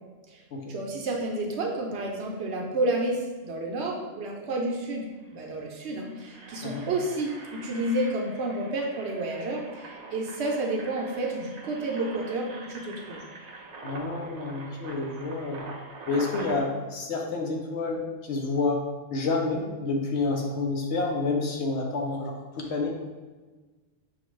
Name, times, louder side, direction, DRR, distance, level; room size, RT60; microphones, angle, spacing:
voice 1, 0.7-5.1 5.3-13.2, right 2 dB, 65° right, 0 dB, 0.8 m, -30 dB
Engine, 4.9-5.0 5.2-5.5 5.9-16.6, right 3 dB, 85° right, 0.3 m, -43 dB
voice 2, 13.8-15.6 16.1-18.8 19.1-22.9, left 3 dB, 65° left, 1 dB, 0.8 m, -29 dB
5.6 x 2.3 x 3.1 m, 1.3 s
omnidirectional pair, 1.3 m